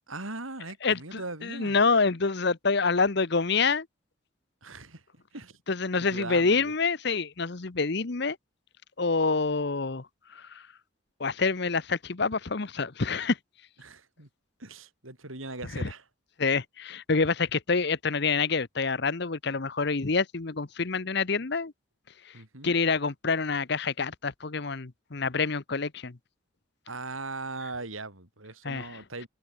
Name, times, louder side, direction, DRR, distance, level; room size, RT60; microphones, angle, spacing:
voice 1, 0.1-1.8 4.6-5.0 5.3-5.6 6.0-6.7 13.8-14.3 14.6-16.1 22.3-22.7 26.9-29.3, right 2 dB, 90° right, 7.3 m, -39 dB
voice 2, 0.8-3.9 5.7-8.4 9.0-10.0 10.3-10.6 11.2-13.4 15.7-15.9 16.4-21.7 22.6-26.2 28.6-28.9, left 4 dB, 55° left, 0.9 m, -27 dB
head